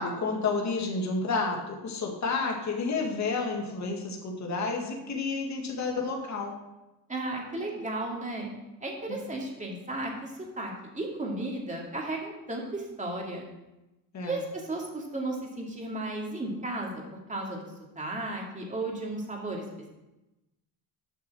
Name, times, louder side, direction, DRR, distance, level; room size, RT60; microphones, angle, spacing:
voice 1, 0.0-6.5 9.1-9.2 14.1-14.3, left 4 dB, 40° left, 1 dB, 1.9 m, -30 dB
voice 2, 7.1-8.5 8.8-13.5 14.2-17.0 17.3-17.6 18.0-19.6, right 2 dB, 15° right, -1 dB, 2.6 m, -34 dB
8.2 x 6.1 x 6.1 m, 0.99 s
supercardioid pair, 95°, 45 cm